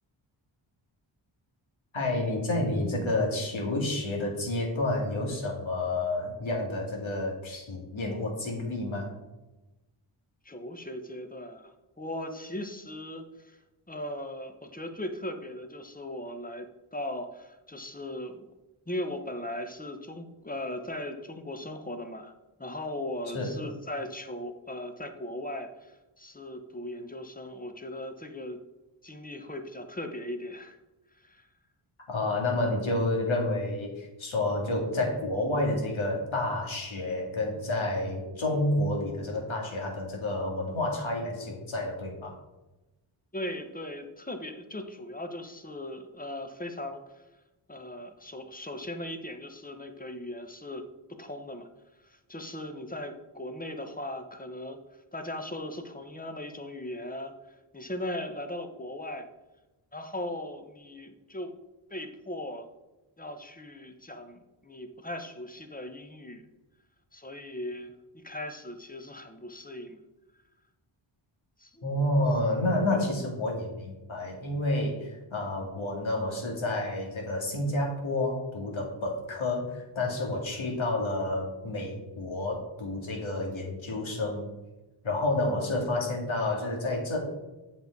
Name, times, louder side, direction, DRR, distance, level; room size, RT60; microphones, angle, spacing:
voice 1, 1.9-9.1 23.3-23.6 32.1-42.4 71.8-84.5 85.0-87.2, left 2 dB, 65° left, 0 dB, 2.2 m, -29 dB
voice 2, 10.4-13.6 13.9-18.5 18.9-22.3 22.6-28.6 29.0-30.8 31.1-31.5 43.3-47.2 47.7-51.7 52.0-59.3 59.9-61.5 61.9-62.7 63.2-66.4 67.1-70.0 71.6-71.8 80.4-80.5, left 1 dB, 15° left, 7 dB, 1.0 m, -38 dB
8.0 x 5.4 x 4.6 m, 1.0 s
cardioid pair, 60°, 50 cm